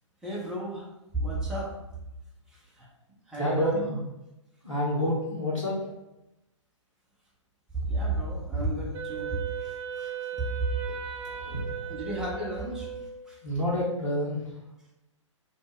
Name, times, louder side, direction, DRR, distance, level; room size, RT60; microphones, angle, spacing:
voice 1, 0.2-1.7 2.5-2.9 3.3-3.9 5.8-5.9 7.7-10.7 11.9-13.4, right 2 dB, 5° right, -6 dB, 0.6 m, -33 dB
voice 2, 3.3-4.0 4.6-5.9 11.2-11.7 13.4-14.6, equal, 90° left, -8 dB, 0.8 m, -28 dB
Wind instrument woodwind instrument, 8.9-13.3, right 8 dB, 55° right, 0.6 m, -37 dB
2.2 x 2.0 x 3.4 m, 0.92 s
figure-of-eight pair, 120°, 16 cm